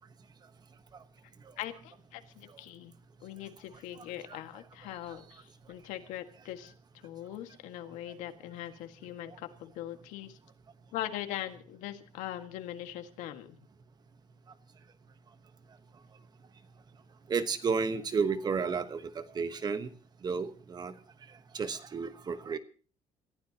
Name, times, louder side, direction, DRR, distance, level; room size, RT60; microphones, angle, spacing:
voice 1, 1.6-3.0 3.2-10.4 10.9-13.6, left 12 dB, 85° left, 7 dB, 1.8 m, -41 dB
voice 2, 17.3-19.9 20.2-20.9 21.5-22.6, right 5 dB, 35° right, 11 dB, 1.2 m, -32 dB
28.0 x 15.0 x 2.9 m, 0.38 s
cardioid pair, 115°, 12 cm